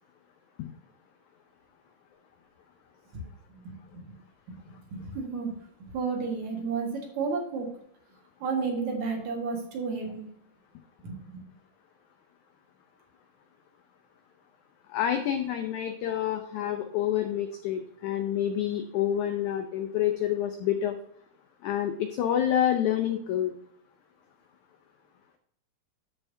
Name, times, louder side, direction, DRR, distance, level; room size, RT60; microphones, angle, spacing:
voice 1, 3.6-4.2 4.9-5.5 5.8-7.7 8.4-10.3 11.0-11.4, right 4 dB, 55° right, 1 dB, 2.7 m, -32 dB
voice 2, 14.9-20.9 21.6-23.5, left 10 dB, 85° left, 6 dB, 1.7 m, -28 dB
13.0 x 5.7 x 2.7 m, 0.69 s
omnidirectional pair, 4.2 m